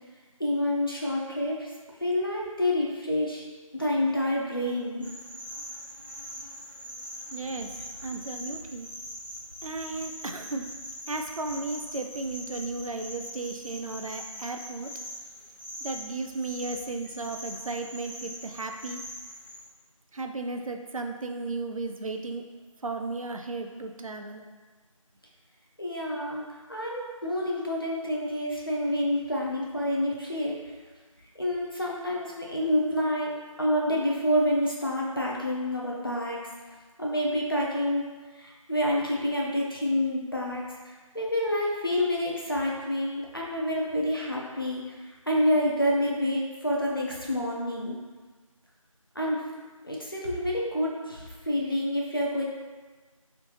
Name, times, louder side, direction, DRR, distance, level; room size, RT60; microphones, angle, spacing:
voice 1, 0.4-1.7 2.0-3.4 3.7-5.1 25.8-26.4 26.7-30.6 31.4-33.3 33.6-36.4 37.0-38.0 38.4-44.8 45.3-48.0 49.2-49.4 49.8-52.4, left 1 dB, 40° left, -3 dB, 0.6 m, -28 dB
sound 1, 5.0-19.6, equal, 35° right, 0.9 m, -42 dB
voice 2, 7.3-7.7 8.0-8.9 9.6-10.7 11.1-14.9 15.8-19.0 20.1-22.4 22.8-24.4, right 3 dB, 75° right, 5 dB, 0.4 m, -34 dB
3.1 x 2.7 x 3.2 m, 1.4 s
figure-of-eight pair, 180°, 18 cm